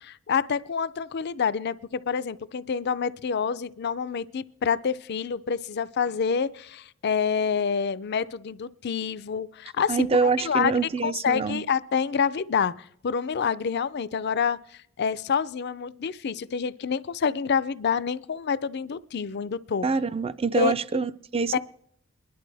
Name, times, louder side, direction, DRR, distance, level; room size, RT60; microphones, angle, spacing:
voice 1, 0.0-10.7 11.0-12.7 13.0-14.6 15.0-19.9 20.5-20.7 21.5-21.6, left 6 dB, 55° left, 0.5 m, -27 dB
voice 2, 9.9-11.6 19.8-21.6, right 4 dB, 30° right, 0.4 m, -25 dB
22.5 x 11.0 x 3.4 m
head